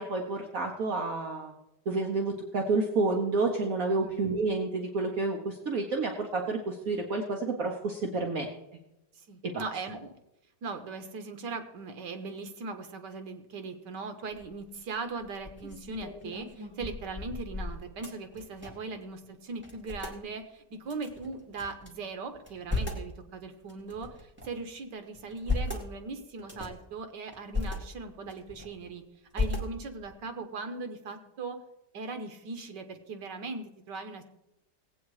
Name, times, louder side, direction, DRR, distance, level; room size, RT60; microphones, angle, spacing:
voice 1, 0.0-1.5 1.9-8.5 9.4-9.6, right 3 dB, 55° right, 1 dB, 1.4 m, -29 dB
voice 2, 9.1-10.1 10.6-29.0 29.3-31.6 31.9-34.2, right 4 dB, 85° right, 7 dB, 1.8 m, -39 dB
sound 1, 14.3-14.7 15.2-19.0 19.2-19.3 19.6-20.2 20.9-21.9 22.3-23.1 23.7-24.6 25.1-25.9 26.4-26.8 27.3-27.8 28.2-28.9 29.3-30.1, left 3 dB, 5° right, 1.7 m, -35 dB
18.0 x 8.4 x 4.8 m, 0.92 s
omnidirectional pair, 1.8 m